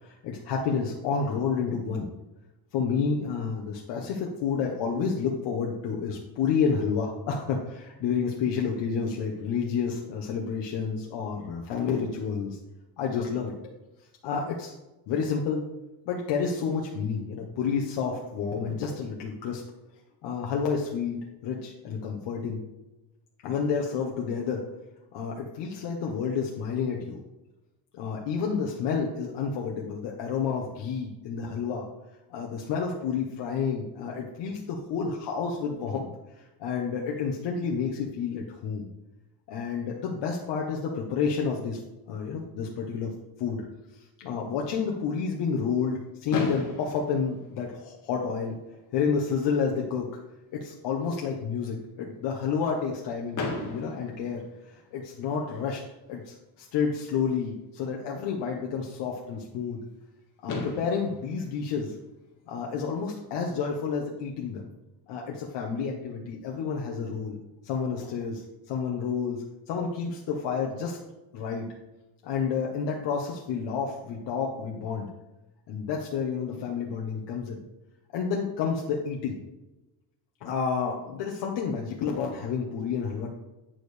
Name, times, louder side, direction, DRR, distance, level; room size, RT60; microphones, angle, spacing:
voice 1, 0.0-2.1 2.7-12.6 13.0-13.5 14.2-14.7 15.1-15.7 16.1-19.6 20.2-22.6 23.4-24.7 25.1-27.2 27.9-31.8 32.3-36.1 36.4-38.9 39.5-41.8 42.1-43.1 43.4-43.6 44.2-48.6 48.9-50.1 50.5-55.8 56.1-59.8 60.4-62.0 62.5-64.6 65.1-71.0 71.3-71.7 72.2-75.1 75.7-77.6 78.1-79.4 80.4-83.3, left 6 dB, 85° left, -1 dB, 1.1 m, -30 dB
Fireworks, 46.3-48.3 49.1-49.2 49.4-49.6 49.9-50.0 53.3-55.2 56.9-57.0 60.0-60.1 60.5-62.8, left 3 dB, 45° left, 2.0 m, -37 dB
9.0 x 6.4 x 3.4 m, 1.0 s
cardioid pair, 140°, 42 cm